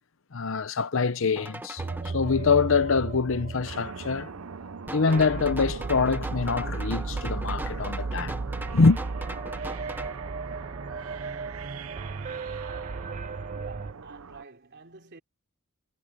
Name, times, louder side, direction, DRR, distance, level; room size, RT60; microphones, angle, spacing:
voice 1, 0.3-4.3 4.9-8.4 8.7-9.0, left 4 dB, 65° left, 0.7 m, -24 dB
sound 1, 1.4-2.1 4.9-10.2, right 1 dB, 10° right, 1.3 m, -39 dB
sound 2, 1.8-13.9, right 4 dB, 35° right, 0.5 m, -35 dB
sound 3, 3.6-14.4, right 5 dB, 80° right, 0.7 m, -43 dB
voice 2, 13.5-15.2, right 4 dB, 55° right, 3.2 m, -48 dB
head